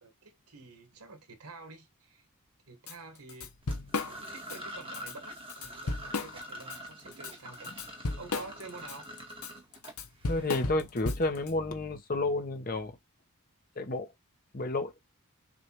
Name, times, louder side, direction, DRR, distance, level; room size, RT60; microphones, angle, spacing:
voice 1, 0.0-2.3 2.7-3.5 4.1-7.8 8.2-9.1, right 3 dB, 90° right, 1.4 m, -48 dB
Drum kit / Drum, 2.9-3.0 3.3-4.6 4.9-5.1 5.5-6.8 7.1-11.5, left 3 dB, 75° left, 0.9 m, -35 dB
sound 1, 3.6-10.5, equal, 25° right, 1.4 m, -45 dB
voice 2, 10.3-13.0 13.8-14.1 14.5-14.9, left 2 dB, 40° left, 0.9 m, -31 dB
6.2 x 2.6 x 2.9 m
head